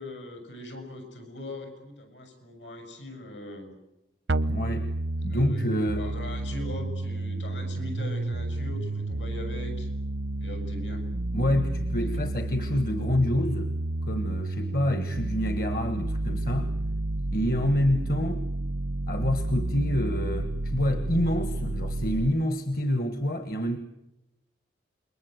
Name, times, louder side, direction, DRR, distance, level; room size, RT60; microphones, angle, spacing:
voice 1, 0.0-3.7 5.2-5.7 6.0-9.9 10.4-11.1 12.0-12.3, left 1 dB, 75° left, 6 dB, 7.3 m, -40 dB
sound 1, 4.3-22.3, right 2 dB, 85° right, 0.9 m, -30 dB
voice 2, 4.5-4.9 5.2-6.1 11.3-13.7 14.1-16.7 17.3-18.5 19.1-23.8, left 1 dB, 50° left, 9 dB, 1.4 m, -27 dB
28.0 x 22.5 x 8.0 m, 0.91 s
head